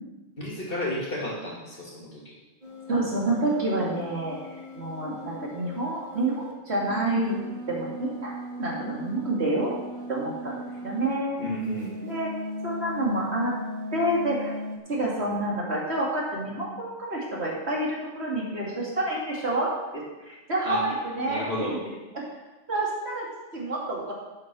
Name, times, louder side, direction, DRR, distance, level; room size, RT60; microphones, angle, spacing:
voice 1, 0.4-2.4 11.4-12.1 20.6-20.9 21.2-21.8, equal, 45° left, -4 dB, 2.9 m, -32 dB
sound 1, 2.6-11.1 11.4-14.8, left 1 dB, 35° right, 1.9 m, -38 dB
voice 2, 2.9-7.4 7.7-8.3 8.6-9.8 10.1-11.4 12.0-12.3 12.6-13.5 13.9-14.6 14.9-21.7 22.1-22.2 22.7-23.3 23.5-24.1, right 1 dB, 55° right, -4 dB, 2.8 m, -28 dB
10.0 x 7.6 x 6.3 m, 1.1 s
omnidirectional pair, 1.3 m